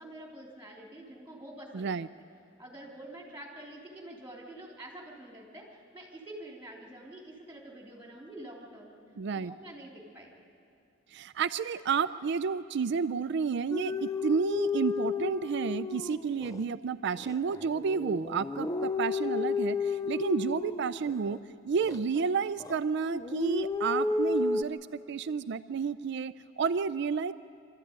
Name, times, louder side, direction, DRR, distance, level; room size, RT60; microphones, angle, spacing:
voice 1, 0.0-1.9 2.6-9.0 9.3-10.3 16.3-16.5 23.8-24.4, right 1 dB, 10° right, -1 dB, 3.3 m, -47 dB
voice 2, 1.7-2.1 9.2-9.5 11.1-24.8 25.1-27.3, right 5 dB, 60° right, 12 dB, 0.4 m, -31 dB
sound 1, 13.7-16.6 17.2-21.4 21.8-22.8 23.1-24.6, left 4 dB, 15° left, 0.5 m, -32 dB
25.5 x 13.5 x 9.5 m, 2.4 s
head